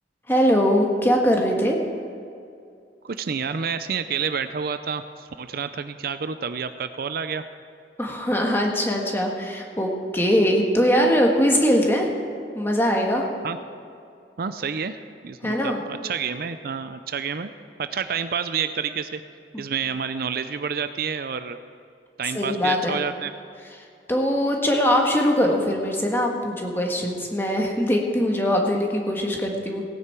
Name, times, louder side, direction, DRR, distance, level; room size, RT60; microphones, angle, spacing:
voice 1, 0.3-1.8 8.0-12.1 12.5-13.2 15.4-15.8 19.5-19.6 22.3-23.0 24.1-29.8, equal, 15° left, 0 dB, 1.4 m, -21 dB
voice 2, 3.0-7.4 13.4-13.6 14.4-17.5 17.8-19.2 19.6-21.6 22.2-23.3, right 6 dB, 55° right, 10 dB, 0.5 m, -29 dB
18.0 x 9.5 x 4.5 m, 2.4 s
head